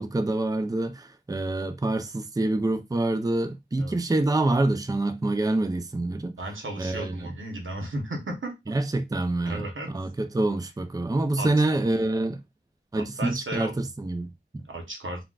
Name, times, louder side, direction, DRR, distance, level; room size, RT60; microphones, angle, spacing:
voice 1, 0.0-6.4 6.8-7.3 8.7-12.4 12.9-14.6, right 2 dB, 20° right, 0.4 m, -26 dB
voice 2, 6.4-8.8 9.5-9.9 11.4-11.9 13.0-13.9 14.7-15.2, right 1 dB, 90° right, 0.8 m, -35 dB
3.7 x 2.3 x 2.3 m
wide cardioid pair, 55°, 20 cm